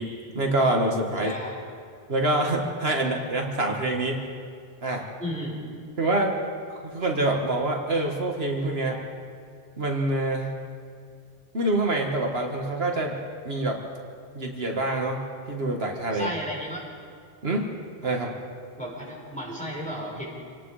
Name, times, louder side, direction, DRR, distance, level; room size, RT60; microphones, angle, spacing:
voice 1, 0.0-1.3 2.1-4.3 4.8-5.0 6.0-6.4 6.8-9.0 9.8-10.5 11.5-13.1 13.4-13.8 14.3-15.2 15.5-16.3 17.4-17.7 18.0-18.3, right 2 dB, 70° right, 1 dB, 2.1 m, -26 dB
voice 2, 1.2-1.6 3.0-3.1 5.2-5.6 16.1-16.8 18.8-20.3, equal, 5° left, -3 dB, 4.7 m, -34 dB
27.5 x 19.0 x 5.0 m, 2.2 s
omnidirectional pair, 1.1 m